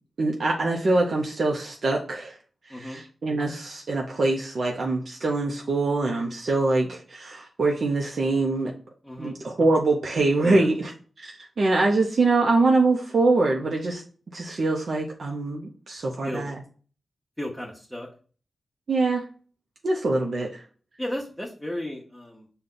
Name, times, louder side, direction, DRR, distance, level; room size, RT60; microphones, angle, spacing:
voice 1, 0.2-2.4 2.7-8.7 9.2-10.7 11.2-14.0 14.3-16.5 18.9-19.2 19.8-20.6, right 3 dB, 65° right, 0 dB, 0.6 m, -24 dB
voice 2, 2.7-3.0 9.0-9.4 10.4-10.7 16.0-16.5 17.4-18.1 21.0-22.5, left 1 dB, 10° left, -2 dB, 1.0 m, -34 dB
5.1 x 2.3 x 3.8 m, 0.41 s
cardioid pair, 40°, 0 cm